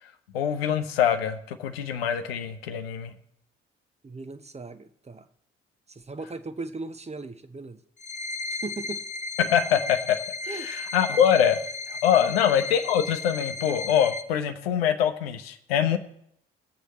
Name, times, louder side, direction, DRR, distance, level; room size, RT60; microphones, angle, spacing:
voice 1, 0.3-3.1 9.4-10.2 10.5-11.6 11.9-16.0, left 9 dB, 80° left, 9 dB, 0.8 m, -24 dB
voice 2, 4.0-5.3 5.9-7.8 8.5-9.0 10.5-10.7 12.2-12.4, right 3 dB, 20° right, 11 dB, 0.9 m, -38 dB
sound 1, 8.0-14.2, left 3 dB, 25° left, 0.8 m, -35 dB
19.0 x 8.1 x 3.1 m, 0.72 s
figure-of-eight pair, 40°, 30 cm